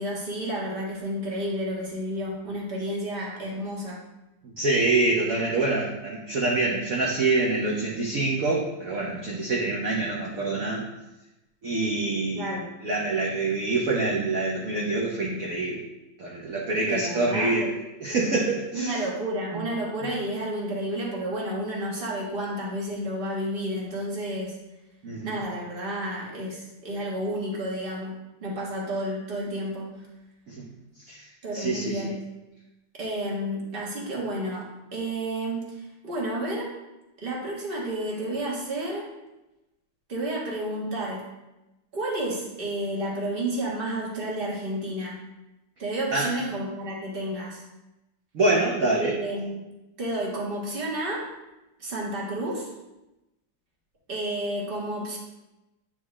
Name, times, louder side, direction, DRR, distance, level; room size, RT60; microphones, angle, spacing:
voice 1, 0.0-4.0 12.3-12.7 16.8-17.6 18.7-24.6 25.2-30.0 31.4-32.3 33.0-36.7 37.2-39.0 40.1-41.2 41.9-45.2 45.8-47.6 49.0-49.7 50.0-51.3 51.8-52.7 54.1-55.2, right 1 dB, 30° right, -4 dB, 1.4 m, -31 dB
voice 2, 4.4-10.8 11.6-12.6 12.8-15.8 16.2-17.7 18.0-19.0 19.5-19.7 25.0-25.3 30.5-30.6 31.1-31.2 31.5-32.0 46.1-46.4 48.3-49.2, right 2 dB, 55° right, -3 dB, 1.1 m, -26 dB
8.9 x 3.7 x 3.1 m, 0.99 s
omnidirectional pair, 2.0 m